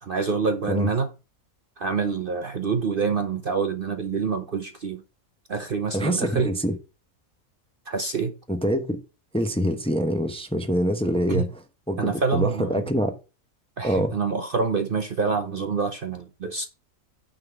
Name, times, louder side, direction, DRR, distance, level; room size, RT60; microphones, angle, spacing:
voice 1, 0.0-1.1 1.8-5.0 5.5-6.5 7.9-8.3 11.3-11.5 12.0-12.8 13.8-16.7, right 5 dB, 50° right, 0.8 m, -26 dB
voice 2, 5.9-6.8 8.5-9.0 9.3-11.5 11.9-13.1 13.8-14.1, equal, 5° left, 0.8 m, -25 dB
9.4 x 3.9 x 7.0 m
omnidirectional pair, 1.4 m